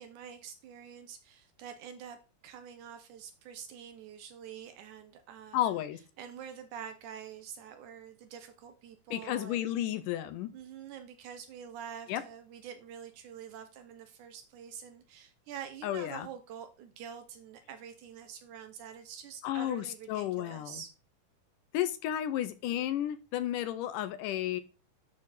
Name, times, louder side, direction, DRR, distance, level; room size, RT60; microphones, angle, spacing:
voice 1, 0.0-2.2 2.4-5.7 6.2-9.7 10.5-20.9, right 8 dB, 75° right, 2.0 m, -46 dB
voice 2, 5.5-6.0 9.1-10.5 12.1-12.2 15.8-16.3 19.4-20.8 21.7-24.6, left 12 dB, 80° left, 2.1 m, -32 dB
7.5 x 6.3 x 4.1 m
omnidirectional pair, 3.9 m